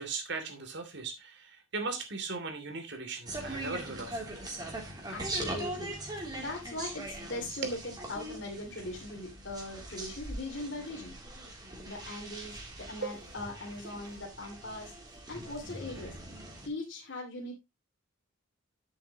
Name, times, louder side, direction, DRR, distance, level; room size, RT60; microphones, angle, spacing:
voice 1, 0.0-4.2 7.6-7.8 13.0-13.2, right 4 dB, 60° right, 2.8 m, -38 dB
sound 1, 3.3-16.7, right 1 dB, 20° right, 3.0 m, -41 dB
voice 2, 5.1-6.0 6.4-11.2 11.8-14.9 15.3-16.2 16.7-17.5, left 2 dB, 60° left, 2.7 m, -40 dB
10.5 x 7.8 x 3.0 m
head